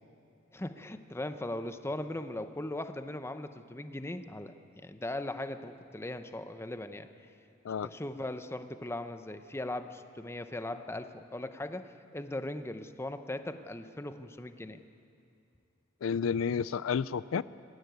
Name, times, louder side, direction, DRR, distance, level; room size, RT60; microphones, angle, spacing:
voice 1, 0.5-7.1 7.8-14.8, left 1 dB, 15° left, 9 dB, 0.7 m, -39 dB
voice 2, 16.0-17.4, left 6 dB, 85° left, 18 dB, 0.4 m, -30 dB
21.0 x 15.0 x 9.3 m, 2.6 s
head